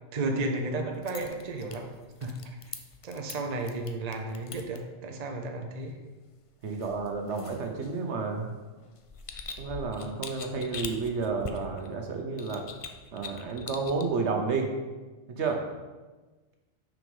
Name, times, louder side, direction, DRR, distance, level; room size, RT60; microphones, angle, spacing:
voice 1, 0.1-1.9 2.2-2.6 3.0-6.0, right 2 dB, 40° right, 3 dB, 0.7 m, -33 dB
sound 1, 0.9-4.8 6.6-8.2 8.8-11.9 12.4-14.0, left 5 dB, 60° left, 0.3 m, -43 dB
voice 2, 6.6-8.5 9.6-12.7 13.1-14.7 15.3-15.6, right 4 dB, 65° right, 3 dB, 1.2 m, -31 dB
6.2 x 5.0 x 5.4 m, 1.2 s
omnidirectional pair, 1.3 m